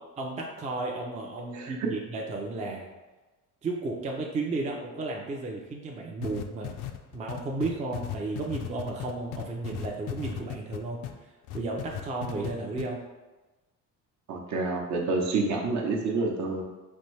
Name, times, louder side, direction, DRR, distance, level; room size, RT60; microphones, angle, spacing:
voice 1, 0.2-2.9 3.6-6.7 7.1-11.1 11.5-13.0, right 3 dB, 25° right, 0 dB, 0.4 m, -33 dB
sound 1, 6.2-11.1 11.5-12.5 12.8-12.9, left 12 dB, 80° left, 0.5 m, -36 dB
voice 2, 14.3-16.6, right 3 dB, 60° right, 0 dB, 0.8 m, -28 dB
4.3 x 2.6 x 3.2 m, 1.2 s
cardioid pair, 125°, 32 cm